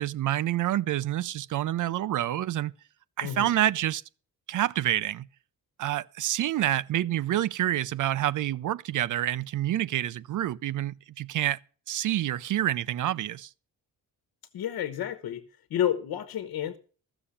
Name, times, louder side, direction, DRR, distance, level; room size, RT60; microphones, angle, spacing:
voice 1, 0.0-2.7 3.2-4.0 4.5-5.3 5.8-11.6 11.9-13.5, right 12 dB, 60° right, 0.6 m, -28 dB
voice 2, 3.2-3.6 14.5-15.4 15.7-16.8, left 10 dB, 80° left, 1.2 m, -30 dB
14.0 x 7.0 x 7.0 m
wide cardioid pair, 160°, 36 cm